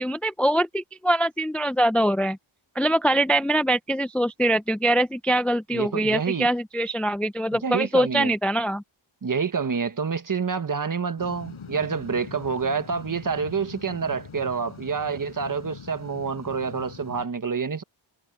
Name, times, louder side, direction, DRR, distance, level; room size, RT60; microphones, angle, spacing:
voice 1, 0.0-2.4 2.8-8.8, right 1 dB, 5° left, 0.4 m, -23 dB
voice 2, 5.7-6.5 7.6-8.3 9.2-17.8, right 5 dB, 40° right, 1.3 m, -27 dB
sound 1, 11.2-17.3, left 6 dB, 75° left, 7.0 m, -43 dB
wide cardioid pair, 125°, 50 cm